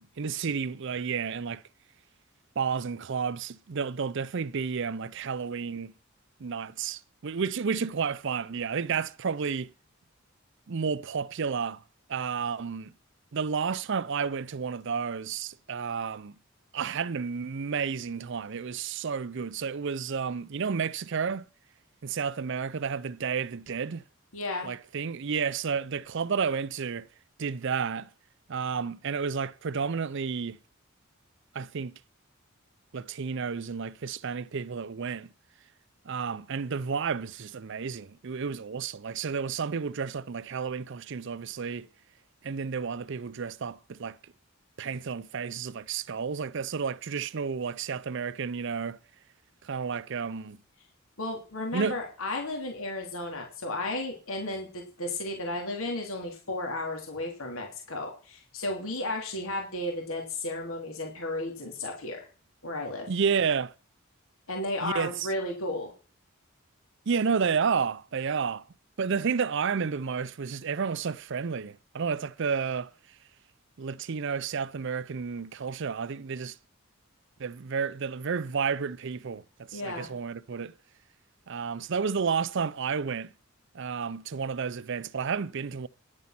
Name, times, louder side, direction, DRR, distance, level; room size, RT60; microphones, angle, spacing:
voice 1, 0.0-1.6 2.6-5.9 6.4-9.7 10.7-11.8 12.1-12.9 13.3-16.4 16.7-21.5 22.0-24.1 24.6-27.1 27.4-28.1 28.5-30.6 31.5-32.0 32.9-35.3 36.0-41.9 42.4-44.2 44.8-49.0 49.6-50.6 51.7-52.0 63.1-63.7 64.8-65.3 67.1-68.7 69.0-72.9 73.8-76.6 77.4-80.7 81.5-83.3 83.7-85.9, right 6 dB, 60° right, 0.5 m, -31 dB
voice 2, 24.3-24.7 51.2-62.3 62.6-63.1 64.5-65.9 79.7-80.1, left 2 dB, 80° left, 3.3 m, -33 dB
10.5 x 9.5 x 6.0 m
head